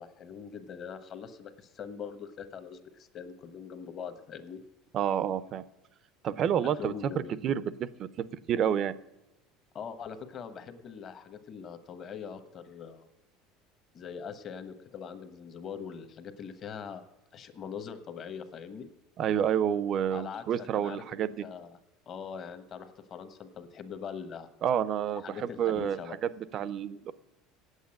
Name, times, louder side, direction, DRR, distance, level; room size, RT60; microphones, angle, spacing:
voice 1, 0.0-4.6 6.8-7.4 9.7-13.1 13.9-17.1 17.3-18.9 20.1-21.7 22.1-24.5 25.2-26.2, left 7 dB, 35° left, 10 dB, 1.1 m, -42 dB
voice 2, 4.9-5.6 6.2-7.1 7.4-8.1 8.5-8.9 19.2-21.4 24.6-27.1, right 9 dB, 40° right, 17 dB, 0.5 m, -29 dB
8.3 x 8.2 x 8.7 m, 1.0 s
cardioid pair, 135°, 0 cm